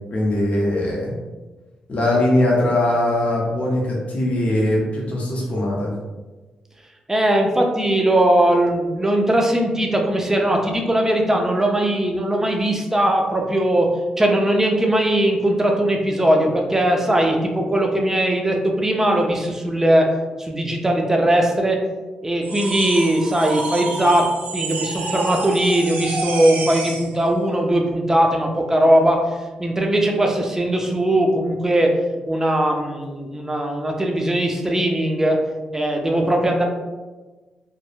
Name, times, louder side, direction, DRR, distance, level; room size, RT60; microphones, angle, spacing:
voice 1, 0.1-1.1 1.9-5.9, left 1 dB, 55° left, -4 dB, 0.7 m, -20 dB
voice 2, 7.1-13.9 14.2-20.1 20.4-21.8 22.2-24.2 24.5-29.2 29.6-31.9 32.3-35.4 35.7-36.6, right 1 dB, 15° right, 1 dB, 0.5 m, -19 dB
sound 1, 22.4-27.1, right 3 dB, 75° right, 0.5 m, -29 dB
2.2 x 2.0 x 3.0 m, 1.2 s
supercardioid pair, 60°, 3 cm